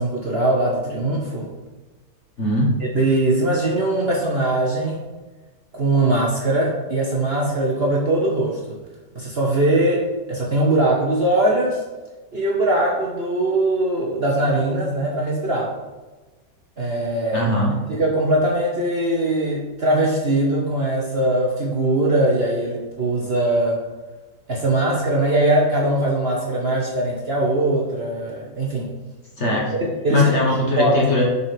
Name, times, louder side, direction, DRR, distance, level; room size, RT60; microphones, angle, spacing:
voice 1, 0.0-1.5 2.9-5.0 5.7-8.8 9.1-11.8 12.3-15.7 16.8-17.5 17.9-23.8 24.5-28.9 29.7-30.3 30.8-30.9, right 1 dB, 40° right, -3 dB, 1.1 m, -21 dB
voice 2, 2.4-2.8 17.3-17.8 29.4-29.7 30.1-31.2, left 1 dB, 40° left, -3 dB, 1.6 m, -20 dB
7.2 x 4.7 x 4.9 m, 1.2 s
omnidirectional pair, 1.9 m